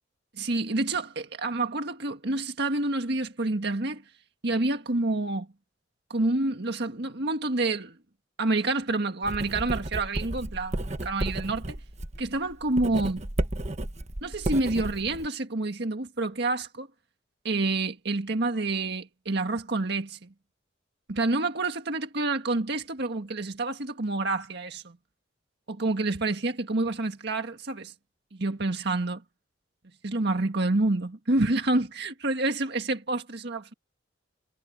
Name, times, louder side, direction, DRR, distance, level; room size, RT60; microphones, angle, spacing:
voice 1, 0.4-4.0 4.4-5.5 6.1-8.0 8.4-11.8 12.2-13.3 14.2-16.9 17.4-20.3 21.1-25.0 25.7-27.9 28.3-29.2 30.0-33.7, right 2 dB, 60° right, 1.7 m, -28 dB
Writing, 9.2-15.3, right 1 dB, 35° right, 1.3 m, -33 dB
head